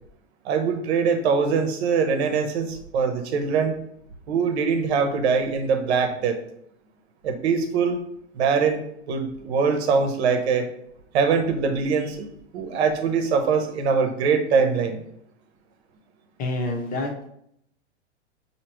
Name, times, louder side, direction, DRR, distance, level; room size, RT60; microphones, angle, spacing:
voice 1, 0.4-3.8 4.3-6.4 7.2-8.0 8.3-8.8 9.1-10.7 11.1-12.3 12.5-15.0, right 5 dB, 60° right, 6 dB, 0.9 m, -22 dB
voice 2, 16.4-17.3, left 2 dB, 25° left, 2 dB, 0.9 m, -28 dB
5.8 x 2.9 x 3.0 m, 0.72 s
hypercardioid pair, 125°, 36 cm